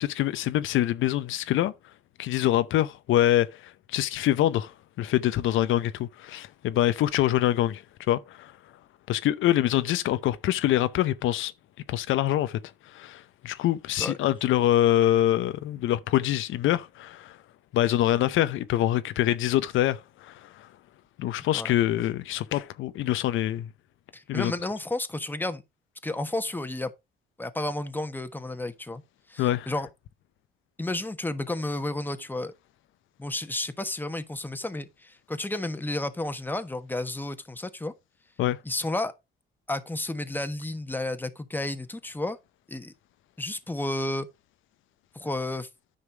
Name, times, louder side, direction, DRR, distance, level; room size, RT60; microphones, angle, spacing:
voice 1, 0.0-1.7 2.2-4.7 5.0-8.5 9.1-11.5 11.9-12.6 12.9-17.4 17.7-20.7 21.2-23.7 24.3-24.5 29.4-29.7 38.4-38.6, left 13 dB, 80° left, 0.7 m, -25 dB
voice 2, 24.1-25.6 26.0-26.9 27.4-29.0 29.3-29.9 30.8-32.5 33.2-37.9 38.6-39.1 39.7-42.4 42.7-42.9 43.4-44.3 45.1-45.7, left 2 dB, 10° left, 1.3 m, -32 dB
9.7 x 5.6 x 4.7 m
cardioid pair, 90°, 20 cm